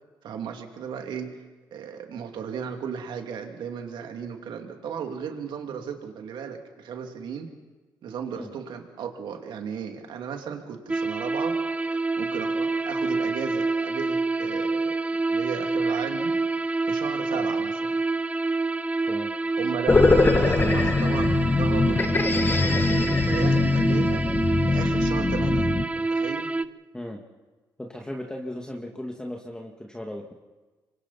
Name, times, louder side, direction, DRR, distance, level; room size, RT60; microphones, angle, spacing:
voice 1, 0.2-1.4 1.7-7.5 8.0-11.6 12.2-15.0 15.3-16.4 16.8-18.0 19.6-24.2 24.7-26.5, right 7 dB, 75° right, 4 dB, 2.5 m, -35 dB
sound 1, 10.9-26.7, right 3 dB, 15° right, 0.6 m, -27 dB
sound 2, 19.9-25.8, left 3 dB, 25° left, 1.2 m, -22 dB
voice 2, 27.8-30.3, left 1 dB, 10° left, 1 dB, 2.1 m, -36 dB
27.0 x 23.5 x 4.2 m, 1.2 s
cardioid pair, 70°, 8 cm